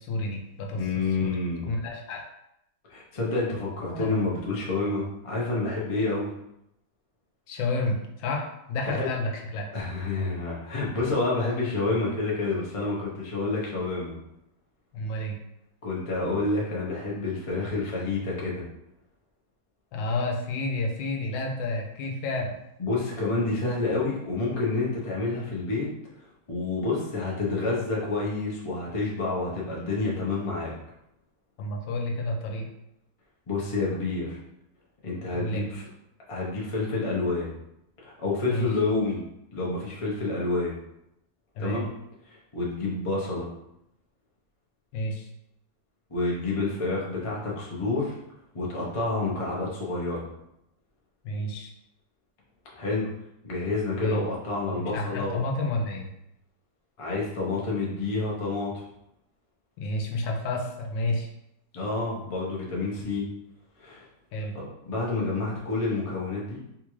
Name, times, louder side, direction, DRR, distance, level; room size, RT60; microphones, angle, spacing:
voice 1, 0.0-0.8 1.2-1.4 1.6-2.3 3.9-4.1 7.5-9.7 14.9-15.4 19.9-22.5 31.6-32.7 35.3-35.8 38.5-38.7 41.5-41.8 44.9-45.3 51.2-51.7 54.0-54.2 54.9-56.1 59.8-61.3 64.3-64.5, left 2 dB, 85° left, 2 dB, 1.3 m, -30 dB
voice 2, 0.7-1.7 2.9-6.3 8.9-9.1 9.7-14.2 15.8-18.6 22.8-25.9 26.2-30.7 33.5-34.4 35.0-35.8 36.3-37.5 38.0-39.3 39.5-40.7 41.6-41.9 42.3-43.5 46.1-48.1 48.5-50.2 52.7-53.1 53.4-55.4 57.0-58.8 61.7-63.3 63.8-64.0 64.5-66.6, left 3 dB, 55° left, -4 dB, 0.3 m, -29 dB
3.6 x 2.4 x 3.0 m, 0.80 s
omnidirectional pair, 2.0 m